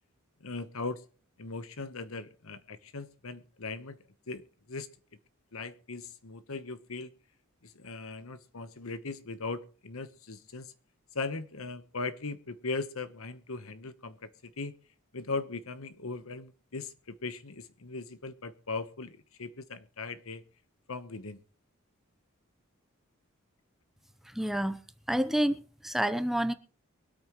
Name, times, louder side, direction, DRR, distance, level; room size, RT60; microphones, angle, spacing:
voice 1, 0.4-1.0 1.4-4.0 4.3-4.4 4.7-4.9 5.5-7.1 7.6-10.7 11.1-14.7 15.1-20.4 20.9-21.4, left 3 dB, 75° left, 1.1 m, -39 dB
voice 2, 24.3-24.8 25.1-26.5, right 1 dB, ahead, 0.7 m, -28 dB
23.5 x 8.7 x 3.1 m
head